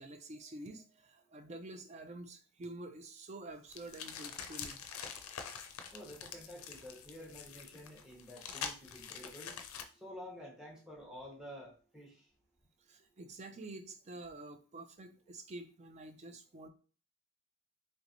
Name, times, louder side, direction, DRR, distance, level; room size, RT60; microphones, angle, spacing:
voice 1, 0.0-5.2 12.9-16.7, right 2 dB, 30° right, 7 dB, 0.3 m, -48 dB
sound 1, 3.7-9.8, left 7 dB, 90° left, 0.4 m, -45 dB
voice 2, 5.9-9.5 9.9-12.3, equal, 5° right, -4 dB, 0.7 m, -50 dB
3.3 x 3.1 x 2.5 m, 0.40 s
head